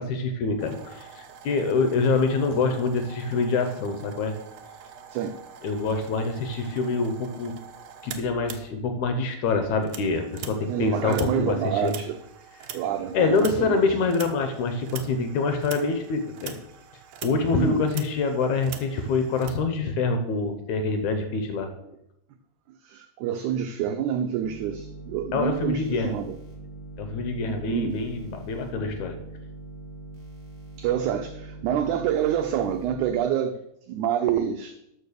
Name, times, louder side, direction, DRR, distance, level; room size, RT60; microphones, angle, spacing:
voice 1, 0.0-4.3 5.6-7.6 8.0-11.9 13.1-16.6 17.2-21.7 25.3-26.2 27.0-29.2, left 4 dB, 70° left, 7 dB, 2.0 m, -25 dB
sound 1, 0.6-9.2 9.5-19.5, right 8 dB, 70° right, 1.6 m, -44 dB
voice 2, 10.7-12.2 12.7-13.9 17.5-17.8 22.8-26.4 27.4-28.0 30.8-33.6 33.9-34.8, right 9 dB, 90° right, 7 dB, 1.7 m, -27 dB
sound 2, 24.4-33.1, right 2 dB, 30° right, 2.8 m, -42 dB
12.5 x 4.8 x 6.7 m, 0.84 s
omnidirectional pair, 4.1 m